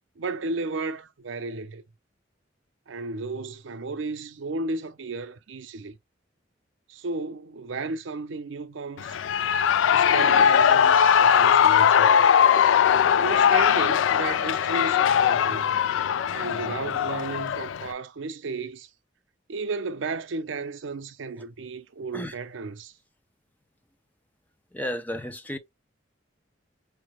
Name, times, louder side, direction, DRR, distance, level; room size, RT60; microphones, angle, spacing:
voice 1, 0.2-1.8 2.9-6.0 6.9-9.2 9.9-12.3 13.2-15.7 16.3-18.9 19.5-22.9, right 3 dB, 85° right, 0.6 m, -34 dB
Shout / Cheering, 9.0-17.9, left 8 dB, 80° left, 0.3 m, -20 dB
voice 2, 24.7-25.6, equal, 10° left, 0.4 m, -32 dB
4.6 x 2.1 x 3.0 m
head